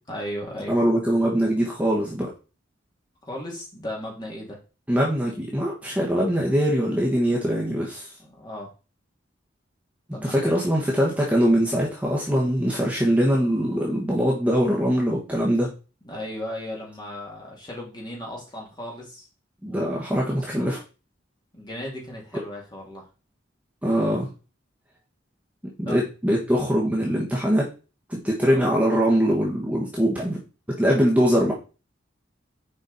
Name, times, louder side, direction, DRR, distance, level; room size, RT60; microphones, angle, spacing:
voice 1, 0.1-0.8 3.2-4.6 8.2-8.7 10.1-10.5 16.0-19.3 19.7-19.9 20.5-20.7 21.5-23.0 25.8-26.0 28.5-28.6, left 1 dB, 20° left, -2 dB, 2.5 m, -36 dB
voice 2, 0.7-2.3 4.9-8.1 10.1-15.7 19.6-20.8 23.8-24.3 25.8-27.7 28.1-30.4 30.8-31.5, equal, 10° right, -3 dB, 1.3 m, -22 dB
6.7 x 5.1 x 4.1 m, 0.33 s
head